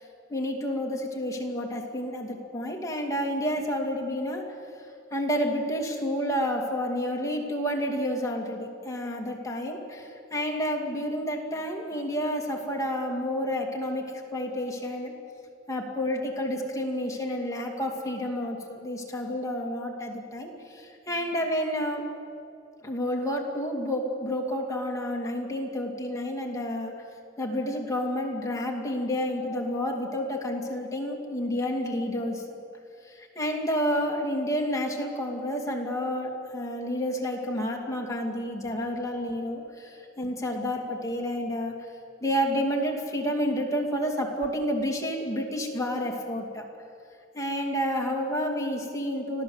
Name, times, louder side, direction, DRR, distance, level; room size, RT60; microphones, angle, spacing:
voice 1, 0.3-4.4 5.1-14.0 14.3-15.1 15.7-22.0 22.8-26.9 27.4-32.4 33.1-41.7 42.2-46.6 47.3-49.4, equal, 15° left, 0 dB, 2.6 m, -30 dB
25.5 x 16.5 x 8.1 m, 2.5 s
head